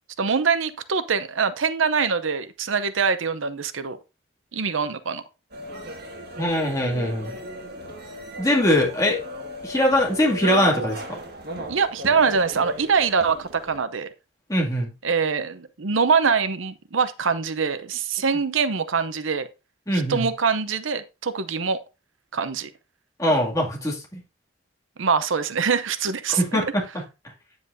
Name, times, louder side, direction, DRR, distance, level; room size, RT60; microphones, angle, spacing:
voice 1, 0.2-4.0 4.5-5.2 11.7-14.1 15.0-19.5 19.9-21.8 22.3-22.7 25.0-26.6, right 5 dB, 80° right, 0.7 m, -24 dB
sound 1, 5.5-13.8, right 1 dB, 50° right, 2.0 m, -35 dB
voice 2, 6.4-7.3 8.4-9.2 9.6-11.2 14.5-14.9 19.9-20.3 23.2-24.2 26.3-27.0, left 1 dB, 15° left, 2.3 m, -22 dB
9.4 x 7.8 x 2.7 m
head